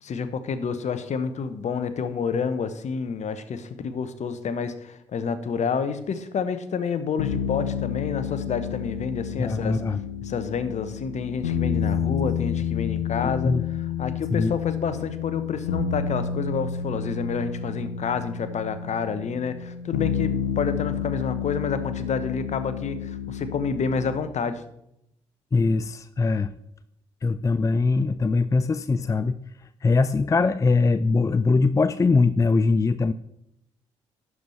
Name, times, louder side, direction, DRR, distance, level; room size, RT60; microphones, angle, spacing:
voice 1, 0.0-9.8 10.2-24.6, left 6 dB, 50° left, 11 dB, 1.0 m, -29 dB
sound 1, 7.2-24.2, left 8 dB, 85° left, 0.9 m, -30 dB
voice 2, 9.4-10.0 13.2-13.6 14.3-14.5 25.5-26.5 27.2-29.3 29.8-33.1, left 3 dB, 20° left, 13 dB, 0.4 m, -22 dB
11.5 x 4.8 x 5.5 m, 0.79 s
figure-of-eight pair, 40°, 15 cm